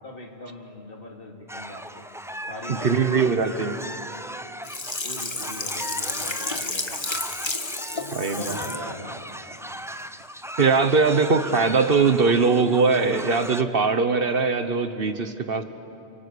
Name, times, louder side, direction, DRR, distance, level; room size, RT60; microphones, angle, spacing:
voice 1, 0.0-2.1 2.4-4.3 5.0-7.0 7.9-9.2 9.5-9.8, left 2 dB, 55° left, 1 dB, 2.9 m, -40 dB
sound 1, 1.5-13.6, equal, 5° right, 0.5 m, -37 dB
voice 2, 2.7-3.7 8.1-8.5 10.6-15.6, right 4 dB, 60° right, 9 dB, 1.3 m, -21 dB
Sink (filling or washing), 4.6-8.8 9.3-9.4, left 2 dB, 25° left, 1.3 m, -31 dB
29.5 x 23.5 x 8.5 m, 2.7 s
omnidirectional pair, 1.1 m